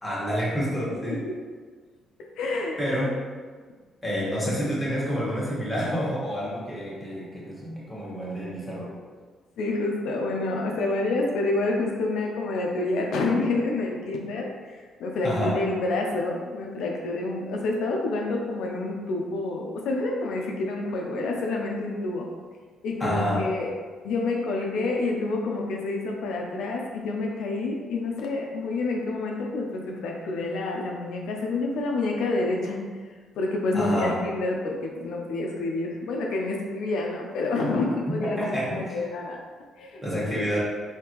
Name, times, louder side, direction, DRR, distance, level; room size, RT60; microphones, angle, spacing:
voice 1, 0.0-1.2 2.8-3.1 4.0-8.9 15.2-15.5 23.0-23.4 33.7-34.2 38.2-39.0 40.0-40.6, equal, 5° left, -8 dB, 1.3 m, -28 dB
voice 2, 0.9-1.4 2.2-3.1 5.8-6.0 9.6-22.3 22.8-23.7 24.0-39.4 39.8-40.0 40.3-40.6, left 2 dB, 80° left, 0 dB, 0.4 m, -28 dB
3.4 x 2.7 x 2.9 m, 1.5 s
cardioid pair, 90°, 0 cm